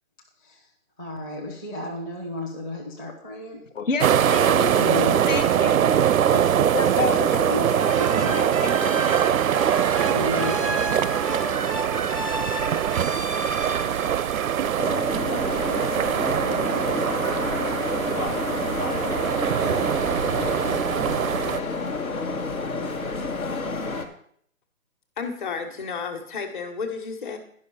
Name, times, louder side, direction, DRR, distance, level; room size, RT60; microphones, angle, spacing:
voice 1, 1.0-3.6 4.7-5.4 6.1-6.7 7.0-8.4 10.0-11.0, left 1 dB, 15° left, 0.6 m, -33 dB
voice 2, 3.7-4.8 5.3-5.9 6.7-7.7 8.1-9.1, left 5 dB, 65° left, 1.1 m, -30 dB
sound 1, 4.0-21.6, right 9 dB, 85° right, 0.5 m, -23 dB
sound 2, 7.8-15.2, right 1 dB, 25° right, 0.4 m, -33 dB
sound 3, 14.8-24.1, left 3 dB, 85° left, 1.5 m, -29 dB
voice 3, 25.2-27.4, left 5 dB, 35° left, 1.3 m, -32 dB
10.5 x 5.7 x 5.5 m
hypercardioid pair, 155°, 41 cm